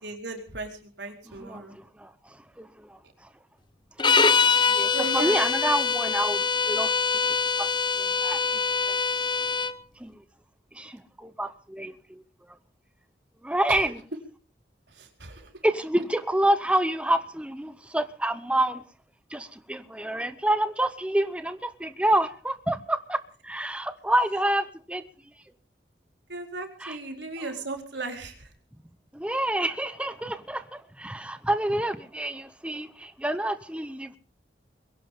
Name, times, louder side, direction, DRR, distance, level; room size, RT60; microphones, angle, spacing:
voice 1, 0.0-1.8 4.9-5.3 13.7-13.8 14.9-15.6 26.3-28.5, right 3 dB, 90° right, 4.2 m, -37 dB
voice 2, 1.4-3.0 4.0-4.1 4.7-6.9 7.6-7.7 8.0-8.4 8.9-9.0 10.0-10.2 10.7-12.2 13.4-14.0 15.6-18.8 19.3-25.0 26.8-27.0 29.1-34.2, right 1 dB, 5° right, 0.9 m, -28 dB
sound 1, 4.0-9.8, left 5 dB, 25° left, 0.8 m, -24 dB
22.5 x 17.0 x 3.7 m
head